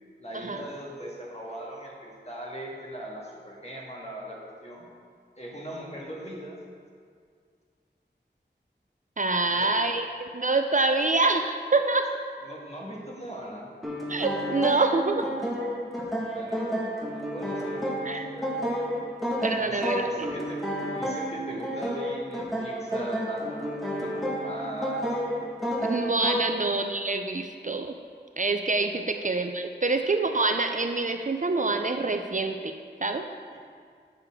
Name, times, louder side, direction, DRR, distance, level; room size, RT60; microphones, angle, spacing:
voice 1, 0.2-4.9 5.4-6.6 9.5-9.8 12.4-13.7 16.3-18.7 19.6-20.6 20.9-25.1 26.5-26.6, equal, 35° left, -3 dB, 1.6 m, -40 dB
voice 2, 9.2-12.1 14.1-15.3 18.0-18.3 19.4-20.1 25.8-27.9 28.4-32.7 33.0-33.3, right 3 dB, 45° right, 6 dB, 0.4 m, -26 dB
sound 1, 13.8-26.6, equal, ahead, 1.4 m, -31 dB
8.1 x 6.6 x 3.6 m, 2.1 s
wide cardioid pair, 45°, 19 cm